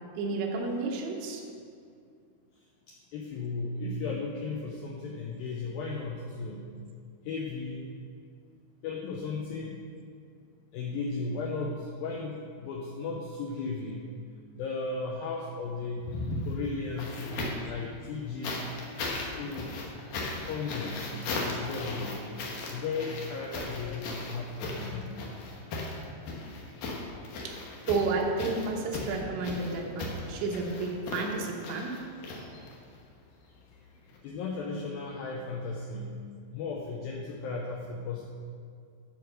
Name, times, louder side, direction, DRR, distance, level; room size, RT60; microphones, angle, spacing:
voice 1, 0.2-1.4 27.4-32.0, right 3 dB, 80° right, 1 dB, 3.4 m, -31 dB
voice 2, 2.9-6.7 7.2-7.9 8.8-9.8 10.7-14.1 14.5-16.1 16.4-18.7 19.4-19.8 20.4-21.0 21.4-22.2 22.7-25.1 34.2-36.2 36.5-38.2, left 3 dB, 90° left, -1 dB, 2.1 m, -35 dB
sound 1, 16.0-17.7 18.4-33.0 34.1-34.2, left 2 dB, 65° left, 2.5 m, -37 dB
12.0 x 4.9 x 6.4 m, 2.2 s
omnidirectional pair, 5.1 m